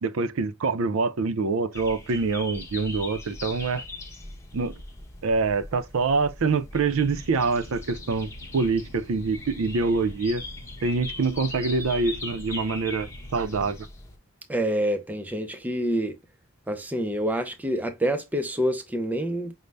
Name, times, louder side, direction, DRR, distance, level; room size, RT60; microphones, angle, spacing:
voice 1, 0.0-3.8 4.5-4.7 5.2-10.4 10.8-13.8, right 4 dB, 70° right, 0.5 m, -25 dB
sound 1, 1.7-14.2, left 2 dB, 10° left, 0.8 m, -40 dB
sound 2, 6.9-13.8, equal, 75° left, 1.0 m, -48 dB
voice 2, 14.5-16.2 16.7-19.5, right 1 dB, 5° right, 0.4 m, -27 dB
5.2 x 2.1 x 3.3 m
head